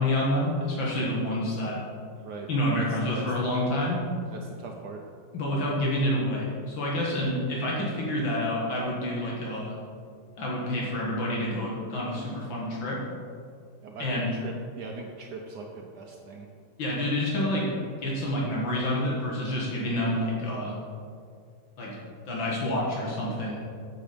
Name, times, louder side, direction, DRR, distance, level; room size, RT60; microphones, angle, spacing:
voice 1, 0.0-1.8 2.5-4.0 5.3-9.8 10.4-13.0 14.0-14.3 16.8-17.7 18.0-20.8 21.8-22.0 22.3-23.6, left 1 dB, 75° left, -4 dB, 2.3 m, -28 dB
voice 2, 2.8-3.2 4.3-5.0 13.8-16.5, right 4 dB, 65° right, 1 dB, 1.2 m, -40 dB
9.0 x 7.1 x 5.1 m, 2.2 s
omnidirectional pair, 2.1 m